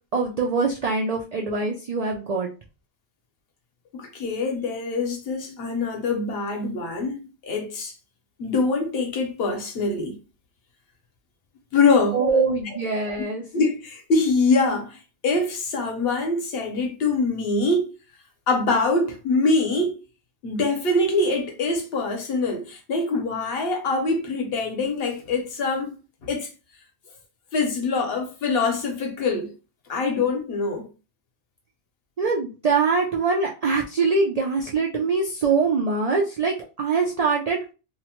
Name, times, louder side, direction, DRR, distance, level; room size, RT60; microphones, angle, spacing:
voice 1, 0.1-2.5 12.1-13.4 32.2-37.7, right 4 dB, 75° right, 0.3 m, -23 dB
voice 2, 3.9-7.9 8.4-10.2 11.7-12.4 13.5-17.9 18.5-20.0 20.4-26.5 27.5-29.5 29.9-30.9, left 3 dB, 60° left, 0.9 m, -24 dB
2.8 x 2.0 x 2.9 m
omnidirectional pair, 1.2 m